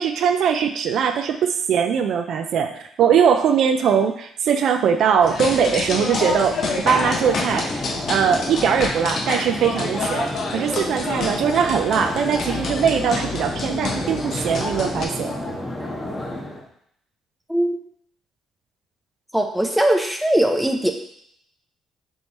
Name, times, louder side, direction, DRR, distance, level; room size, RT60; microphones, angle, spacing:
voice 1, 0.0-6.6 6.9-15.3, right 7 dB, 70° right, 7 dB, 0.3 m, -21 dB
sound 1, 5.2-15.1, left 3 dB, 60° left, 0.7 m, -28 dB
sound 2, 6.8-16.6, left 1 dB, 15° left, 1.2 m, -30 dB
voice 2, 19.3-20.9, right 1 dB, 5° right, 4 dB, 0.6 m, -20 dB
3.5 x 3.0 x 4.0 m, 0.70 s
supercardioid pair, 65°, 0 cm